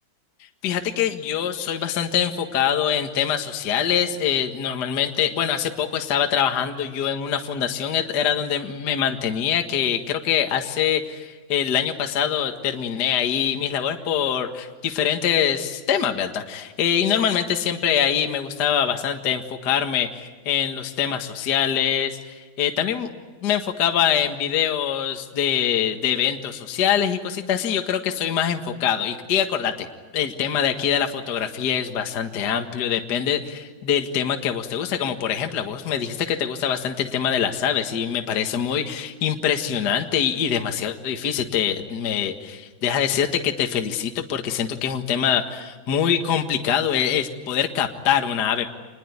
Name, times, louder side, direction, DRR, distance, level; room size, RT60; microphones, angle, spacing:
voice 1, 0.6-23.1 23.4-29.9 30.1-48.7, left 9 dB, 55° left, 5 dB, 1.1 m, -24 dB
27.0 x 20.5 x 9.6 m, 1.4 s
omnidirectional pair, 4.6 m